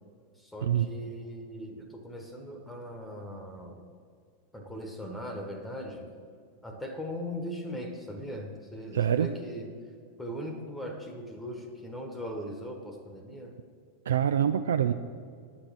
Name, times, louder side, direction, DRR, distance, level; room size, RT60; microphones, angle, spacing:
voice 1, 0.4-3.8 4.5-6.1 6.6-9.7 10.2-13.5, equal, 5° left, 4 dB, 1.2 m, -39 dB
voice 2, 8.9-9.3 14.1-14.9, right 9 dB, 65° right, 9 dB, 0.3 m, -25 dB
9.9 x 5.8 x 7.2 m, 2.1 s
figure-of-eight pair, 90°, 0 cm